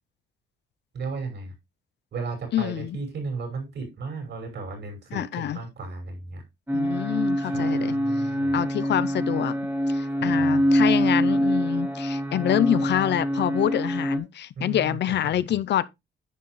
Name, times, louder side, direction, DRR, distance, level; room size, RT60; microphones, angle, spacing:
voice 1, 0.9-1.5 2.1-6.4 7.4-8.6 10.2-10.6 14.5-15.4, right 3 dB, 65° right, 5.9 m, -35 dB
voice 2, 2.5-3.0 5.1-5.6 6.7-7.9 8.5-9.6 9.9-15.8, left 11 dB, 60° left, 0.6 m, -26 dB
sound 1, 6.7-14.2, equal, 10° right, 2.0 m, -24 dB
10.0 x 6.9 x 3.1 m
cardioid pair, 90°, 20 cm